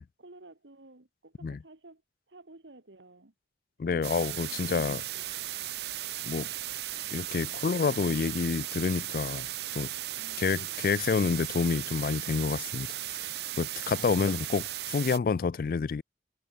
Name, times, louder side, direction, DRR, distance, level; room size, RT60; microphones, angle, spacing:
voice 1, 0.0-2.0 2.3-3.3 3.8-5.4 10.1-10.6, right 2 dB, 85° right, 1.8 m, -53 dB
voice 2, 3.8-5.0 6.2-6.5 7.1-9.5 9.7-9.9 10.4-13.3 13.6-16.0, left 5 dB, 50° left, 0.3 m, -28 dB
sound 1, 4.0-15.2, right 14 dB, 65° right, 0.6 m, -36 dB
head